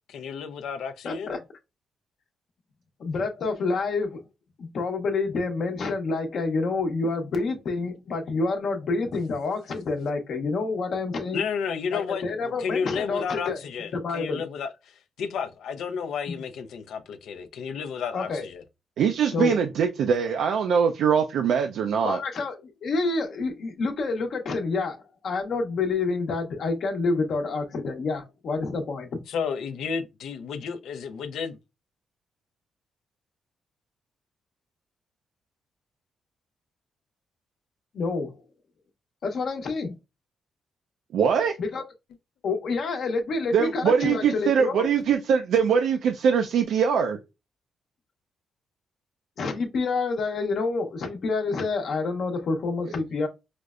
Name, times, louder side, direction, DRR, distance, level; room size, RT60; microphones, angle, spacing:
voice 1, 0.1-1.3 11.3-14.7 15.2-18.6 29.3-31.6, left 6 dB, 85° left, 0.5 m, -32 dB
voice 2, 1.0-1.4 3.0-4.2 4.6-11.4 11.9-13.6 13.9-14.4 16.3-16.4 18.1-18.4 19.3-19.6 22.0-29.2 37.9-38.3 39.2-39.9 41.6-41.8 42.4-44.9 49.4-53.3, left 3 dB, 65° left, 0.9 m, -28 dB
voice 3, 19.0-22.2 41.1-41.6 43.5-47.2, right 7 dB, 80° right, 0.4 m, -22 dB
5.0 x 2.1 x 2.4 m
cardioid pair, 80°, 0 cm